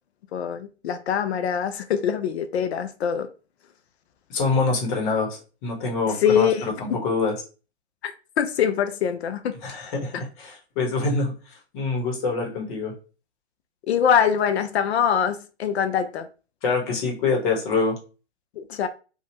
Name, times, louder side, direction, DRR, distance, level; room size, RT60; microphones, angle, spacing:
voice 1, 0.3-3.3 6.2-6.7 8.0-9.5 10.1-10.2 13.9-16.3 18.6-18.9, left 8 dB, 65° left, 0.5 m, -23 dB
voice 2, 4.3-6.5 6.8-7.3 9.6-12.9 16.6-17.9, left 4 dB, 45° left, 1.2 m, -25 dB
2.8 x 2.4 x 2.8 m
hypercardioid pair, 120°, 35 cm